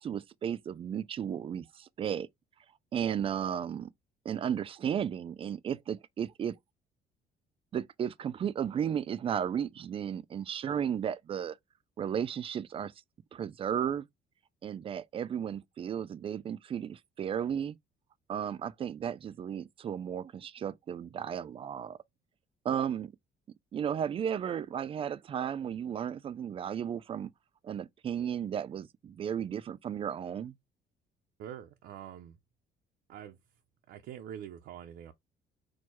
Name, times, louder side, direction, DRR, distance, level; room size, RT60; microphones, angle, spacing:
voice 1, 0.0-2.3 2.9-3.9 4.2-6.6 7.7-11.6 12.0-12.9 13.3-14.1 14.6-17.8 18.3-22.0 22.6-23.1 23.7-27.3 27.6-30.5, right 8 dB, 35° right, 0.3 m, -34 dB
voice 2, 31.4-32.4 33.1-33.4 33.9-35.1, right 10 dB, 75° right, 0.6 m, -45 dB
4.5 x 2.2 x 4.4 m
cardioid pair, 110°, 17 cm